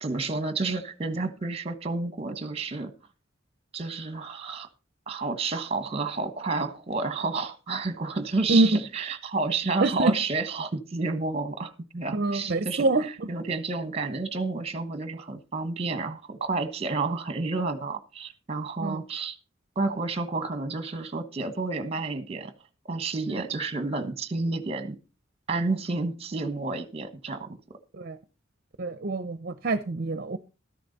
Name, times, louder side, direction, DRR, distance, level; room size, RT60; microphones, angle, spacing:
voice 1, 0.0-2.9 3.7-4.7 5.1-19.4 19.7-22.5 22.8-25.0 25.5-27.8, right 3 dB, 30° right, 1.2 m, -30 dB
voice 2, 8.5-8.8 9.8-10.1 12.1-13.0 18.8-19.0 23.3-23.4 27.9-28.2 28.8-30.4, right 2 dB, 50° right, 0.6 m, -25 dB
13.5 x 10.5 x 4.1 m
head